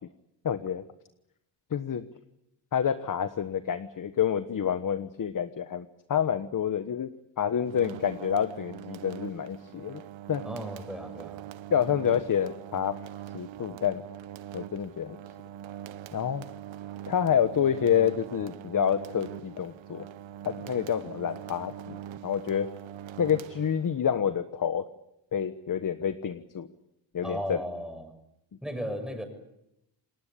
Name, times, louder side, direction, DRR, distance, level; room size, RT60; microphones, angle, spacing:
voice 1, 0.4-0.8 1.7-2.1 2.7-7.1 7.4-10.0 10.3-10.4 11.7-13.0 13.3-14.0 14.5-15.2 16.1-16.4 17.1-20.1 20.4-22.7 23.2-24.8 25.3-26.7 27.1-27.6, left 8 dB, 45° left, 10 dB, 1.3 m, -28 dB
sound 1, 7.6-24.1, right 11 dB, 85° right, 1.0 m, -43 dB
voice 2, 10.4-11.4 27.2-28.1 28.6-29.2, equal, ahead, 5 dB, 6.6 m, -35 dB
28.5 x 19.5 x 8.5 m, 0.84 s
cardioid pair, 105°, 45 cm